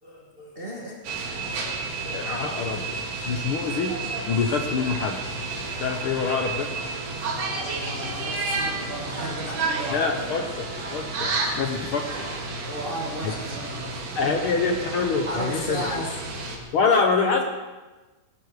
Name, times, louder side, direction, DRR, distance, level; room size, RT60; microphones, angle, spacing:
voice 1, 0.0-1.0 7.3-10.4 12.7-14.0 15.2-16.2, equal, 30° right, -2 dB, 1.1 m, -34 dB
sound 1, 1.0-16.6, right 3 dB, 90° right, 3.5 m, -31 dB
voice 2, 2.1-2.9 3.2-4.0 4.3-5.2 5.8-6.7 9.9-12.3 13.2-13.3 14.1-15.9 16.7-17.4, left 5 dB, 75° left, 4 dB, 1.2 m, -25 dB
18.0 x 12.0 x 4.8 m, 1.2 s
omnidirectional pair, 3.6 m